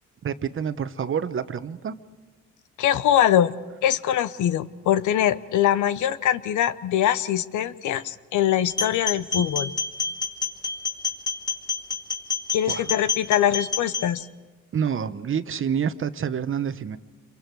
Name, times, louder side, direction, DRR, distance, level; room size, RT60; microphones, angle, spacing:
voice 1, 0.2-1.9 12.7-12.9 14.7-17.0, right 7 dB, 45° right, 12 dB, 1.0 m, -28 dB
voice 2, 2.8-3.5 3.8-9.7 12.5-14.3, left 11 dB, 75° left, 15 dB, 0.8 m, -23 dB
sound 1, 8.7-14.1, left 5 dB, 15° left, 3.6 m, -28 dB
28.0 x 23.0 x 4.7 m, 1.3 s
cardioid pair, 90°, 30 cm